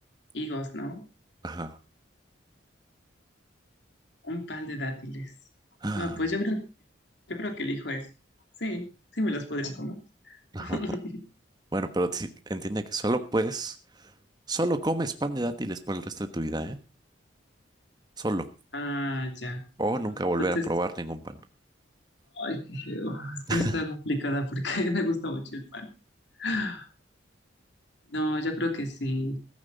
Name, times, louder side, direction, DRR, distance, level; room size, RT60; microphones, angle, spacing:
voice 1, 0.3-1.0 4.2-5.3 6.0-6.6 7.3-8.1 8.6-10.0 10.2-11.0 18.7-19.6 20.4-20.6 22.3-25.9 26.4-26.9 28.1-29.4, left 1 dB, 65° left, 5 dB, 2.9 m, -31 dB
voice 2, 1.4-1.8 5.8-6.2 10.5-10.8 11.7-14.1 14.5-16.8 18.2-18.5 19.8-21.4 23.5-23.8, right 1 dB, 20° right, 8 dB, 1.2 m, -29 dB
15.0 x 14.0 x 4.0 m, 0.31 s
head